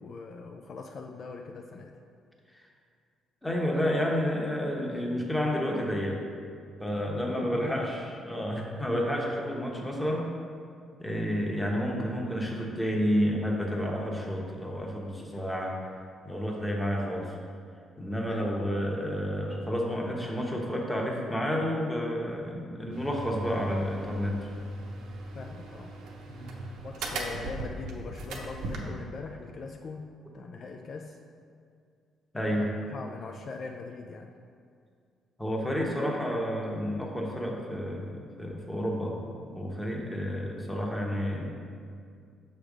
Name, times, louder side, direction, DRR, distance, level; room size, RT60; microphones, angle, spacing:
voice 1, 0.0-2.0 6.9-8.1 18.3-18.5 25.3-25.9 26.8-31.2 32.5-34.3 40.0-40.2, left 4 dB, 50° left, 3 dB, 0.3 m, -41 dB
voice 2, 3.4-6.2 6.8-10.3 11.0-15.8 16.2-17.4 18.0-24.4 26.3-26.5 32.3-32.7 35.4-39.2 39.5-41.5, equal, 10° left, -1 dB, 1.0 m, -30 dB
sound 1, 22.9-28.8, right 2 dB, 80° right, 0.8 m, -38 dB
6.3 x 3.4 x 5.0 m, 2.3 s
cardioid pair, 90°, 0 cm